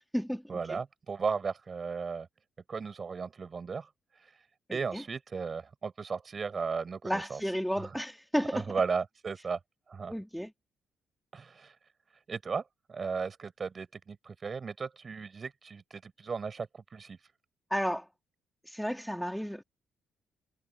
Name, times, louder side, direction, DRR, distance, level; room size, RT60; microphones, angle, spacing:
voice 1, 0.5-2.3 2.7-3.9 4.2-4.3 4.7-7.4 7.8-7.9 8.5-9.6 9.9-10.1 11.3-11.7 12.3-17.2, right 5 dB, 40° right, 7.8 m, -35 dB
voice 2, 4.7-5.0 7.0-8.7 10.1-10.5 17.7-18.1 18.6-19.6, equal, ahead, 3.1 m, -32 dB
cardioid pair, 90°, 0 cm